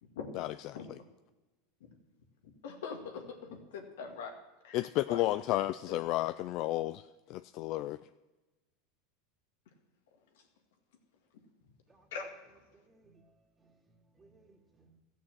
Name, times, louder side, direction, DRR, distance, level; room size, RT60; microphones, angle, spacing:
voice 1, 2.4-4.3 4.6-6.0 10.3-10.4 12.1-12.6, left 5 dB, 85° left, 3 dB, 2.1 m, -44 dB
voice 2, 4.7-8.0, left 16 dB, 50° left, 13 dB, 0.3 m, -32 dB
voice 3, 12.7-15.0, right 3 dB, 15° right, -4 dB, 2.7 m, -65 dB
14.5 x 6.4 x 7.5 m, 1.1 s
supercardioid pair, 130°, 0 cm